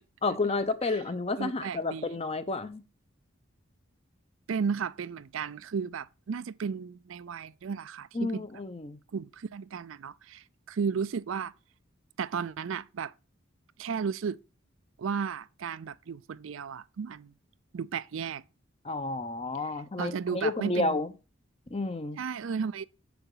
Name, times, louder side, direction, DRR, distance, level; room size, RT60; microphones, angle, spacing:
voice 1, 0.2-2.8 8.1-9.0 18.8-21.1 21.7-22.2, left 3 dB, 30° left, 0.7 m, -31 dB
voice 2, 1.4-2.1 4.5-8.4 9.1-11.5 12.2-13.1 13.8-14.4 15.0-17.3 17.7-18.4 20.0-21.0 22.2-22.8, right 6 dB, 70° right, 0.4 m, -34 dB
7.0 x 6.9 x 3.8 m
head